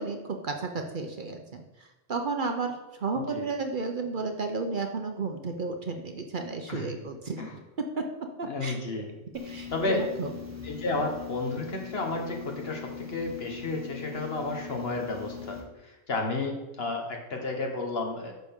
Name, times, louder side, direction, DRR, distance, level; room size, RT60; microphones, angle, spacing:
voice 1, 0.0-1.6 2.1-7.4 8.4-8.8 9.4-10.3, right 4 dB, 50° right, 4 dB, 0.8 m, -33 dB
voice 2, 3.1-3.5 6.7-6.9 7.4-7.5 8.4-9.2 9.7-10.4 10.6-18.3, left 2 dB, 60° left, 2 dB, 1.5 m, -32 dB
buzzing light, 9.3-15.6, left 7 dB, 15° right, 1.5 m, -41 dB
9.5 x 6.6 x 3.7 m, 1.1 s
omnidirectional pair, 1.2 m